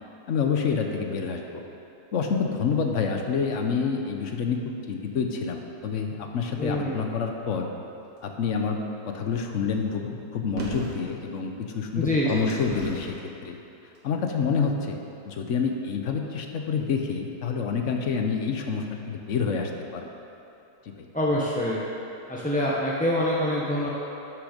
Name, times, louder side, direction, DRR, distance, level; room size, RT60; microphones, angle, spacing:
voice 1, 0.3-1.6 2.1-4.6 4.9-7.7 8.2-8.8 9.1-13.1 13.4-13.6 14.0-20.1 20.9-21.1, left 5 dB, 55° left, 3 dB, 1.0 m, -28 dB
voice 2, 6.6-7.0 12.0-12.5 21.1-21.8 22.3-23.9, left 1 dB, 10° left, -7 dB, 0.6 m, -25 dB
sound 1, 10.6-11.0 11.8-13.2 13.9-14.0, right 2 dB, 85° right, 2.0 m, -36 dB
11.5 x 6.4 x 5.1 m, 2.8 s
omnidirectional pair, 1.8 m